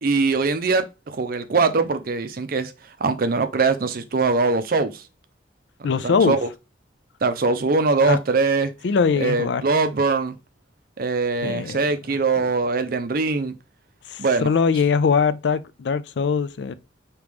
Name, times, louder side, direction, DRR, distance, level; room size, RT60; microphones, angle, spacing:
voice 1, 0.0-2.7 3.0-5.0 5.9-6.5 7.2-8.7 9.2-10.4 11.0-13.6 14.2-14.5, right 4 dB, 55° right, 0.5 m, -22 dB
voice 2, 5.8-6.4 8.0-8.2 8.8-9.6 11.4-12.5 14.1-16.7, left 5 dB, 70° left, 0.4 m, -22 dB
4.9 x 3.0 x 3.4 m
head